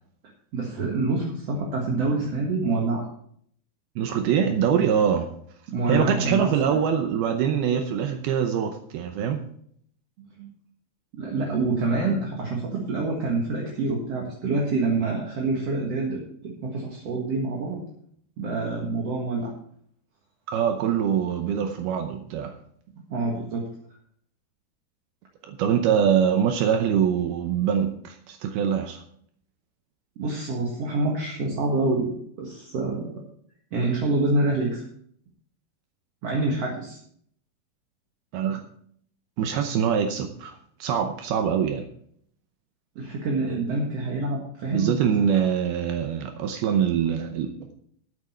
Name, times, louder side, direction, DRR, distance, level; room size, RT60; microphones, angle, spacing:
voice 1, 0.5-3.1 5.7-6.8 10.4-10.5 11.1-17.8 18.4-19.5 23.1-23.7 30.2-32.1 32.4-33.1 33.7-34.8 36.2-37.0 43.0-45.4, right 2 dB, 50° right, -1 dB, 2.2 m, -26 dB
voice 2, 4.0-5.3 5.9-9.4 20.5-22.6 25.4-29.0 38.3-38.6 39.4-41.9 44.7-47.7, right 8 dB, 75° right, 5 dB, 2.6 m, -24 dB
13.5 x 8.7 x 4.4 m, 0.64 s
omnidirectional pair, 4.7 m